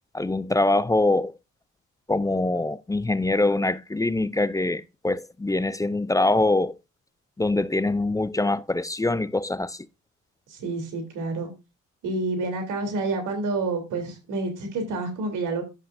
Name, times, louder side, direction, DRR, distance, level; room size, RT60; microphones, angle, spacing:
voice 1, 0.1-1.3 2.1-6.8 7.4-9.9, left 2 dB, 10° left, 0.4 m, -24 dB
voice 2, 10.5-11.5 12.0-15.6, right 3 dB, 85° right, 3.2 m, -28 dB
11.0 x 7.4 x 2.6 m
cardioid pair, 90°, 30 cm